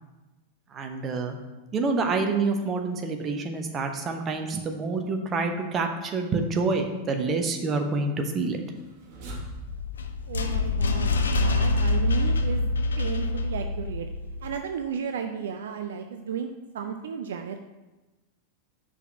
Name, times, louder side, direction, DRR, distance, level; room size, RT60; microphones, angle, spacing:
voice 1, 0.7-1.4 1.7-8.6, right 3 dB, 25° right, 5 dB, 0.8 m, -27 dB
sound 1, 8.7-13.9, equal, 45° right, 1.2 m, -45 dB
sound 2, 9.4-14.6, left 2 dB, 70° left, 0.5 m, -25 dB
voice 2, 10.3-11.1 11.4-14.1 14.4-17.6, right 7 dB, 60° right, 6 dB, 0.4 m, -34 dB
5.6 x 4.2 x 5.8 m, 1.1 s
figure-of-eight pair, 90°, 0 cm